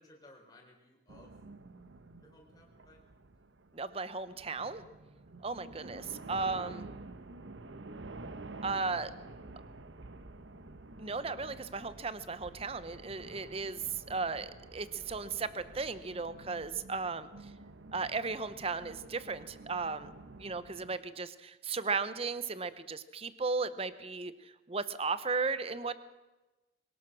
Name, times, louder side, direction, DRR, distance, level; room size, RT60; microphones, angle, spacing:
voice 1, 0.0-1.3 2.2-3.0, left 1 dB, 20° left, 0 dB, 4.4 m, -59 dB
sound 1, 1.1-21.0, right 2 dB, 75° right, 1.0 m, -50 dB
voice 2, 3.7-4.8 5.4-6.9 8.6-9.1 11.0-13.8 14.1-17.3 17.9-20.1 20.4-24.3 24.7-26.0, right 4 dB, 30° right, 14 dB, 0.8 m, -35 dB
23.0 x 18.5 x 6.2 m, 1.1 s
head